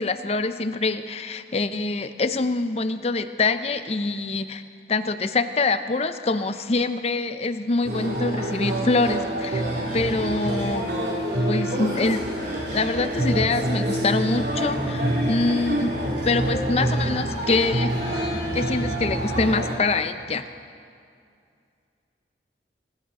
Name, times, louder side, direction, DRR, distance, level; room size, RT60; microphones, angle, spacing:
voice 1, 0.0-4.6 4.9-9.6 9.9-10.8 11.5-12.2 12.7-15.9 16.2-18.2 18.5-20.5, left 3 dB, 35° left, 10 dB, 0.6 m, -25 dB
sound 1, 7.8-19.8, right 1 dB, 70° right, 2.9 m, -27 dB
sound 2, 9.5-10.8 11.9-13.5 14.3-19.8, equal, 45° right, 3.7 m, -35 dB
26.0 x 11.0 x 4.1 m, 2.4 s
head